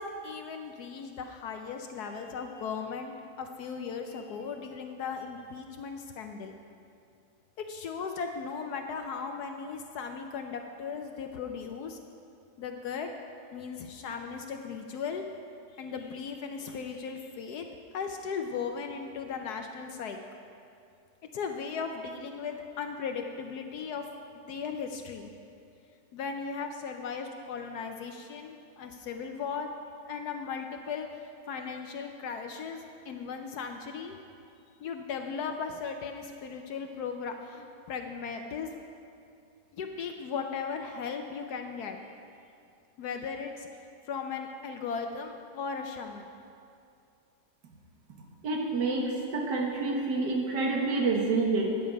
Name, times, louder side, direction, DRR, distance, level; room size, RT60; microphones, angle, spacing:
voice 1, 0.0-6.6 7.6-12.0 12.6-13.1 13.5-15.2 15.7-17.7 17.9-20.2 21.3-24.0 24.3-25.3 26.1-29.7 30.1-31.1 31.5-34.2 34.8-38.8 39.7-42.0 43.0-43.7 44.1-46.3, left 5 dB, 70° left, 4 dB, 1.1 m, -37 dB
voice 2, 48.4-51.8, right 3 dB, 80° right, 0 dB, 2.0 m, -28 dB
10.0 x 8.9 x 5.2 m, 2.5 s
omnidirectional pair, 1.8 m